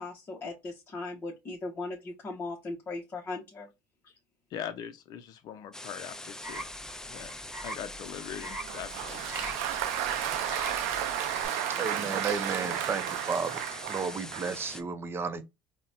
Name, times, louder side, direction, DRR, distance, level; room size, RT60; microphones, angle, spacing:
voice 1, 0.0-3.7 4.0-4.1, left 3 dB, 30° left, 0.8 m, -38 dB
voice 2, 4.5-6.7 7.1-7.3 7.6-9.5, left 9 dB, 60° left, 0.5 m, -41 dB
sound 1, 5.7-14.8, left 2 dB, 10° left, 0.4 m, -43 dB
sound 2, 6.4-11.5, right 1 dB, 10° right, 1.1 m, -43 dB
Applause, 8.4-14.6, right 11 dB, 90° right, 0.4 m, -33 dB
voice 3, 11.8-13.6 13.9-15.4, right 5 dB, 30° right, 0.6 m, -33 dB
3.9 x 2.2 x 2.5 m
supercardioid pair, 95°, 8 cm